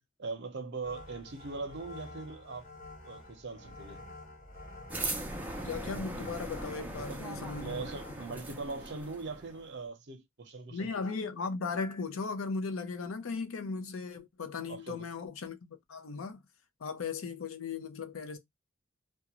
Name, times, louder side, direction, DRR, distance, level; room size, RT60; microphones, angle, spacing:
voice 1, 0.0-2.7 3.0-4.0 7.0-11.2 14.7-15.1, right 4 dB, 55° right, 0.7 m, -41 dB
sound 1, 0.8-8.2, left 1 dB, 40° left, 0.8 m, -49 dB
sound 2, 4.9-9.7, right 1 dB, 10° right, 0.4 m, -40 dB
voice 2, 5.6-7.8 10.7-16.4 16.8-18.4, left 4 dB, 75° left, 0.5 m, -37 dB
2.4 x 2.2 x 2.8 m
head